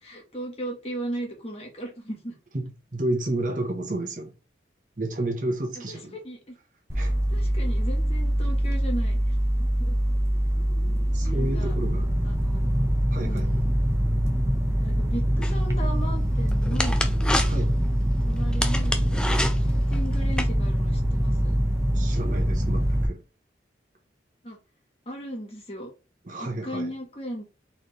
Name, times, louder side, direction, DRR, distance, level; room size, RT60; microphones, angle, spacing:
voice 1, 0.0-2.3 5.7-6.5 7.3-10.0 11.3-11.8 12.2-12.7 13.3-13.7 14.8-17.1 18.2-19.1 19.7-21.5 24.4-24.6 25.0-25.9 26.4-27.4, right 1 dB, 35° left, 1.3 m, -36 dB
voice 2, 2.5-4.3 5.0-6.2 6.9-7.1 11.1-12.1 13.1-13.5 17.5-17.7 21.9-23.2 26.2-26.9, right 1 dB, 45° right, 1.0 m, -31 dB
sound 1, 6.9-23.1, equal, 15° right, 0.8 m, -24 dB
sound 2, 15.4-20.5, left 1 dB, 5° left, 0.4 m, -30 dB
4.1 x 3.2 x 3.3 m
head